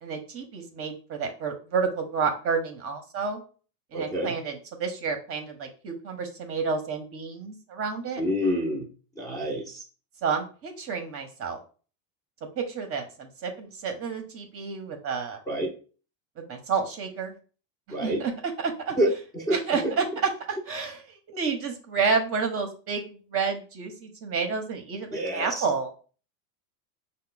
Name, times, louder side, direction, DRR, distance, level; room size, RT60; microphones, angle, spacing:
voice 1, 0.0-3.4 3.9-8.2 10.2-11.6 12.6-15.4 16.4-17.3 18.0-18.3 18.6-19.0 19.5-20.0 20.7-25.9, right 5 dB, 30° right, 5 dB, 0.7 m, -30 dB
voice 2, 3.9-4.4 8.2-8.9 9.2-9.8 15.5-15.7 17.9-18.2 19.0-19.6 19.8-19.9 25.1-25.7, equal, 5° left, -5 dB, 0.6 m, -27 dB
5.5 x 2.2 x 3.8 m, 0.38 s
supercardioid pair, 125°, 48 cm